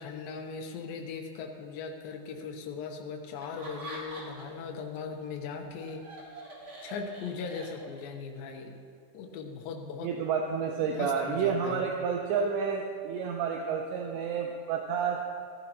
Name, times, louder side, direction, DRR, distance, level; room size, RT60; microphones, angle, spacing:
voice 1, 0.0-6.1 6.8-8.8 9.1-10.1 10.9-11.8, left 5 dB, 75° left, 3 dB, 2.2 m, -39 dB
Laughter, 3.3-4.6 5.0-8.2, right 1 dB, 40° right, 2.0 m, -45 dB
voice 2, 10.0-15.2, right 6 dB, 80° right, 1 dB, 2.8 m, -30 dB
14.5 x 14.0 x 3.0 m, 2.2 s
omnidirectional pair, 5.2 m